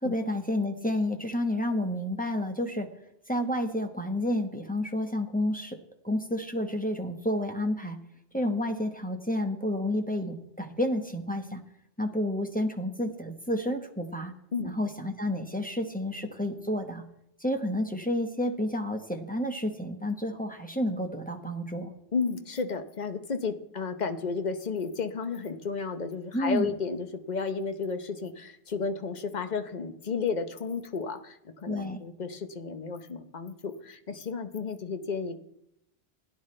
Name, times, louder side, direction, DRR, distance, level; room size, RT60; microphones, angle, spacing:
voice 1, 0.0-2.9 3.3-5.8 6.0-8.0 8.3-11.6 12.0-14.3 14.6-17.0 17.4-21.9 26.3-26.7 31.7-32.0, left 1 dB, 10° left, 3 dB, 1.1 m, -30 dB
voice 2, 22.1-35.4, left 5 dB, 45° left, 8 dB, 1.0 m, -33 dB
16.5 x 10.5 x 3.3 m, 0.78 s
omnidirectional pair, 1.1 m